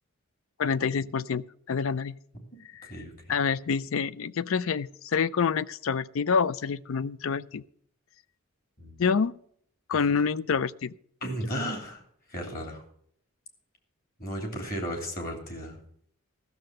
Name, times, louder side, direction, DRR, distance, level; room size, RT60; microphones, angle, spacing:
voice 1, 0.6-2.2 2.7-2.9 3.3-7.6 9.0-9.4 9.9-10.9, left 6 dB, 70° left, 0.4 m, -27 dB
voice 2, 2.3-3.1 8.8-9.0 9.9-10.1 11.2-12.0 12.3-12.8 14.2-15.8, equal, 40° left, 2.9 m, -35 dB
14.0 x 6.7 x 7.6 m
head